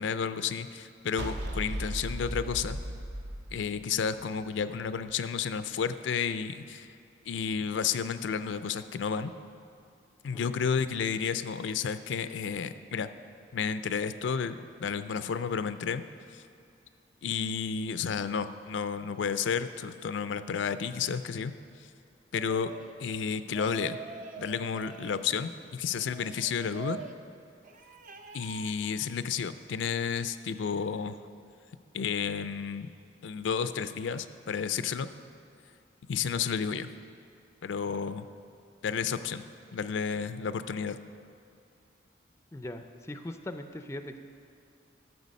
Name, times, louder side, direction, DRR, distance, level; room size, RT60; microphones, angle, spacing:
voice 1, 0.0-2.8 3.5-6.9 7.3-9.3 10.2-13.1 13.5-16.0 16.3-16.4 17.2-21.5 22.3-22.7 23.0-24.0 24.4-27.0 28.3-31.2 31.9-32.9 33.2-35.1 36.1-36.9 37.6-38.3 38.8-39.4 39.7-41.0, left 6 dB, 80° left, 12 dB, 0.4 m, -31 dB
sound 1, 1.2-4.4, equal, 65° right, 0.8 m, -36 dB
sound 2, 22.3-23.0 23.5-25.3 25.9-27.2 27.6-28.8, right 6 dB, 45° right, 0.5 m, -44 dB
voice 2, 42.5-44.2, left 1 dB, 15° left, 8 dB, 0.4 m, -40 dB
12.5 x 6.8 x 5.3 m, 2.5 s
head